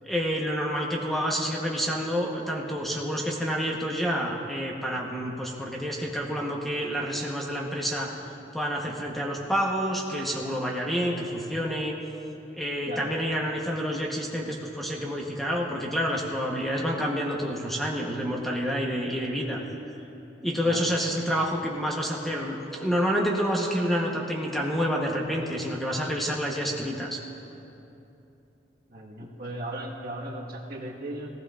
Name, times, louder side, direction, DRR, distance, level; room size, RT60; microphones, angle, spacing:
voice 1, 0.0-8.1 8.5-11.9 12.5-19.6 20.4-27.2, equal, ahead, -2 dB, 1.0 m, -28 dB
voice 2, 12.8-13.2 20.6-20.8 28.9-31.3, right 1 dB, 55° right, -2 dB, 1.5 m, -37 dB
17.5 x 15.5 x 2.5 m, 2.9 s
head